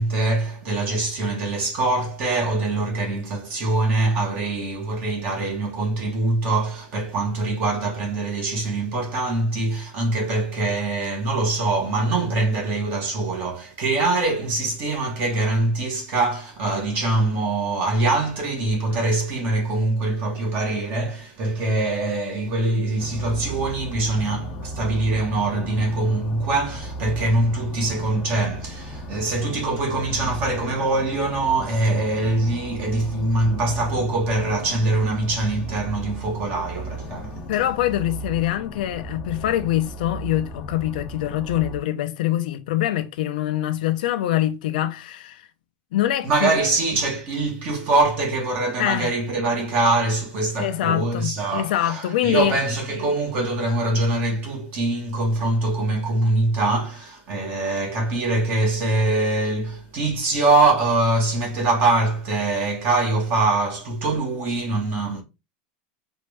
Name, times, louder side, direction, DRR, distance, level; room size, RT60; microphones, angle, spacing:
voice 1, 0.0-37.5 46.2-65.2, right 2 dB, 40° right, 1.6 m, -23 dB
sound 1, 23.0-41.8, equal, 30° left, 0.6 m, -36 dB
voice 2, 37.5-45.4 45.9-46.6 48.8-49.1 50.6-52.5, left 13 dB, 80° left, 0.6 m, -24 dB
4.3 x 2.7 x 3.4 m
supercardioid pair, 150°, 5 cm